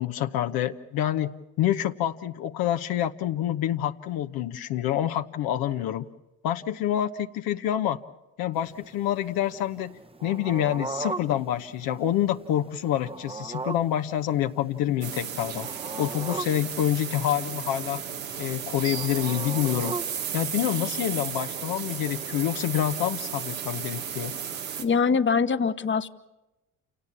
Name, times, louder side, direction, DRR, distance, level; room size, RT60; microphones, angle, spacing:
voice 1, 0.0-1.3 1.6-6.0 6.4-8.0 8.4-10.0 10.2-15.7 16.0-18.0 18.4-20.0 20.3-24.3, left 11 dB, 65° left, 7 dB, 1.0 m, -27 dB
sound 1, 8.5-24.0, right 3 dB, 15° right, 1.0 m, -41 dB
sound 2, 15.0-24.8, right 8 dB, 90° right, 2.2 m, -34 dB
voice 2, 24.8-26.1, left 5 dB, 30° left, 12 dB, 1.2 m, -23 dB
29.0 x 18.0 x 7.3 m, 1.0 s
hypercardioid pair, 60°, 39 cm